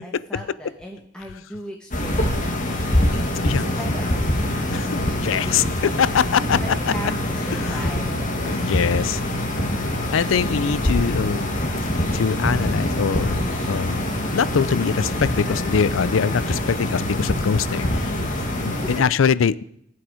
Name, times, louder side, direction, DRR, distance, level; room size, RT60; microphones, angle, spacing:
voice 1, 0.0-2.6 3.4-4.3 5.4-5.6 6.6-8.6 13.2-13.8 18.3-19.2, equal, 5° left, -1 dB, 1.3 m, -38 dB
sound 1, 1.9-19.0, left 1 dB, 40° left, 2.0 m, -24 dB
voice 2, 4.7-5.6 6.0-6.6 7.6-7.8 8.4-9.2 10.1-11.5 12.1-13.4 13.7-18.1 18.6-19.6, left 6 dB, 80° left, 19 dB, 0.4 m, -23 dB
19.0 x 7.8 x 4.9 m, 0.70 s
head